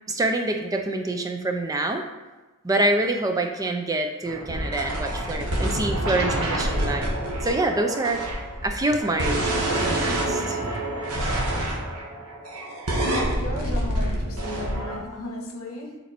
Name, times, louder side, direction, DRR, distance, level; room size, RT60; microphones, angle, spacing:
voice 1, 0.1-2.0 2.6-7.1 7.4-8.2 8.6-9.4 9.8-10.6, right 2 dB, 15° right, 5 dB, 0.4 m, -26 dB
sound 1, 4.2-15.0, right 1 dB, 75° right, 1.5 m, -27 dB
voice 2, 13.3-16.0, left 2 dB, 65° left, 0 dB, 1.5 m, -36 dB
7.2 x 4.2 x 4.3 m, 1.2 s
head